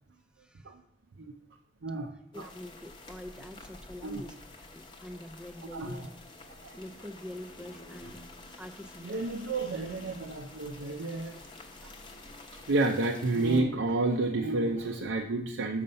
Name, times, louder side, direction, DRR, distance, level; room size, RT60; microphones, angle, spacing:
voice 1, 0.4-0.7 2.3-6.1 6.7-8.2 8.6-9.2, left 1 dB, 5° right, 7 dB, 0.5 m, -45 dB
voice 2, 1.8-2.5 4.0-4.2 5.7-6.1 6.6-6.8 9.0-11.4 11.8-11.9 12.7-15.8, right 2 dB, 70° right, 3 dB, 0.6 m, -30 dB
sound 1, 2.3-13.6, left 2 dB, 25° left, 0.9 m, -49 dB
6.6 x 5.5 x 5.3 m, 0.83 s
head